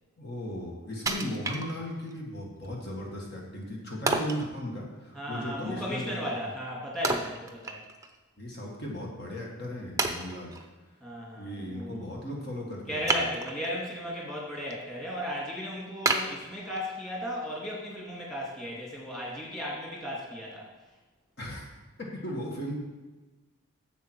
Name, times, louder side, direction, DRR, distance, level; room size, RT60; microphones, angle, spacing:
voice 1, 0.2-6.5 8.4-10.5 11.3-13.2 21.4-21.6 22.0-22.7, equal, 50° left, -2 dB, 1.7 m, -37 dB
Wood, 1.1-2.2 2.6-2.7 4.1-4.5 7.0-8.2 8.5-8.6 9.3-9.4 10.0-10.7 13.0-13.8 14.3-14.7 15.2-15.3 16.1-17.1 17.5-17.6, right 3 dB, 15° right, 0.6 m, -30 dB
voice 2, 5.1-7.8 11.0-12.1 12.9-20.7, equal, ahead, -4 dB, 2.1 m, -35 dB
10.5 x 7.5 x 4.6 m, 1.2 s
head